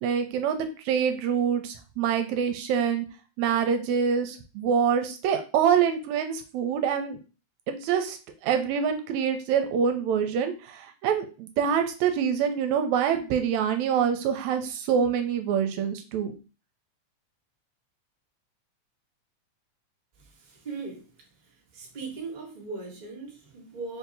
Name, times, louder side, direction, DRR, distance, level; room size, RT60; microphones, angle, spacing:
voice 1, 0.0-3.1 3.4-7.2 7.7-16.3, right 7 dB, 80° right, 7 dB, 1.9 m, -25 dB
voice 2, 20.4-21.0 21.7-24.0, right 4 dB, 45° right, -3 dB, 0.5 m, -38 dB
4.6 x 2.7 x 3.9 m, 0.33 s
omnidirectional pair, 3.4 m